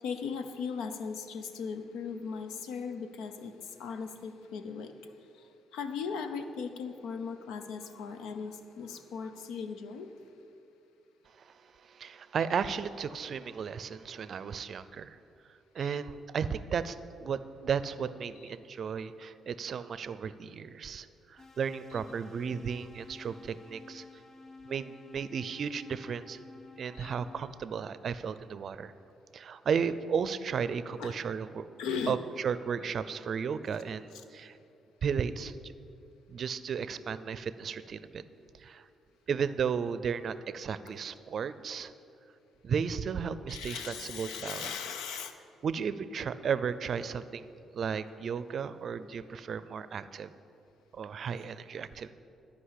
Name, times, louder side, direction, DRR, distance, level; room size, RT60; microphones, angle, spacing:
voice 1, 0.0-4.9 5.7-10.1 15.8-15.9 27.0-27.1 31.0-31.2 31.8-32.2 34.1-34.2 43.5-45.3, left 6 dB, 90° left, 9 dB, 0.7 m, -38 dB
voice 2, 11.4-15.2 15.7-24.0 24.7-26.4 26.8-28.9 29.3-31.7 32.1-34.6 35.0-35.7 36.3-38.2 38.6-38.9 39.3-41.9 42.6-44.7 45.6-47.5 47.7-50.3 50.9-52.1, right 6 dB, 55° right, 14 dB, 0.5 m, -34 dB
sound 1, 21.4-27.6, left 3 dB, 60° left, 1.3 m, -52 dB
13.0 x 5.3 x 8.2 m, 2.7 s
cardioid pair, 90°, 0 cm